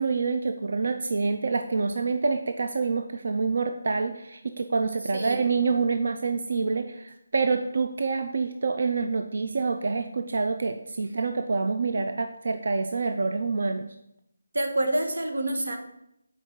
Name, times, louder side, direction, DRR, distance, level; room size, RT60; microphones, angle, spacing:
voice 1, 0.0-13.9, right 4 dB, 45° right, 6 dB, 0.4 m, -27 dB
voice 2, 14.5-15.8, right 1 dB, 85° right, 5 dB, 1.3 m, -27 dB
6.6 x 4.4 x 4.7 m, 0.81 s
figure-of-eight pair, 180°, 0 cm